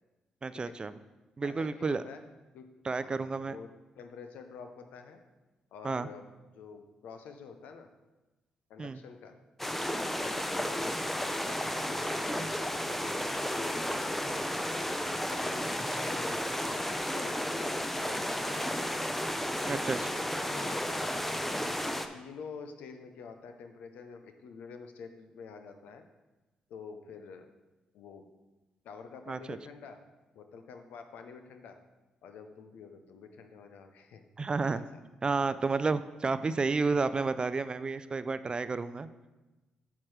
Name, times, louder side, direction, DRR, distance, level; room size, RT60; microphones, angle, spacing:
voice 1, 0.4-1.0 1.4-2.0 2.8-3.6 5.8-6.1 8.8-9.0 19.7-20.0 29.3-29.6 34.4-34.8 35.2-39.1, right 4 dB, 35° right, 13 dB, 0.4 m, -31 dB
voice 2, 1.4-2.2 2.5-2.7 3.0-3.7 4.0-5.2 5.7-7.9 8.7-9.3 10.2-14.4 15.3-19.0 19.6-19.9 20.5-21.4 21.8-26.0 26.7-27.5 27.9-28.3 28.8-30.0 30.3-31.8 32.2-34.2 34.7-34.8, left 5 dB, 75° left, 6 dB, 0.7 m, -48 dB
sound 1, 9.6-22.1, equal, 5° left, 0.7 m, -33 dB
8.6 x 5.9 x 3.3 m, 1.1 s
supercardioid pair, 55°, 3 cm